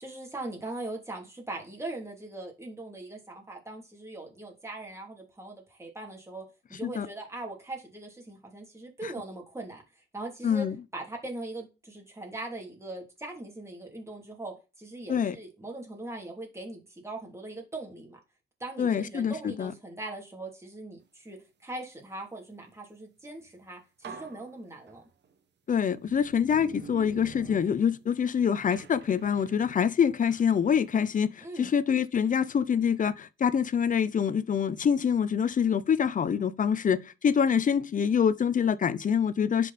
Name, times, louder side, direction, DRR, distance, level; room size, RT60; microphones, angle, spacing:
voice 1, 0.0-9.8 10.1-10.7 10.9-18.2 18.6-25.0 31.4-31.7, right 2 dB, 15° right, 3.3 m, -40 dB
voice 2, 10.4-10.8 15.1-15.4 18.8-19.7 25.7-39.7, left 7 dB, 40° left, 0.8 m, -25 dB
sound 1, 23.5-23.6 24.0-25.3 26.0-28.3 28.7-30.5, right 6 dB, 60° right, 1.7 m, -47 dB
10.5 x 5.4 x 4.3 m
cardioid pair, 90°, 20 cm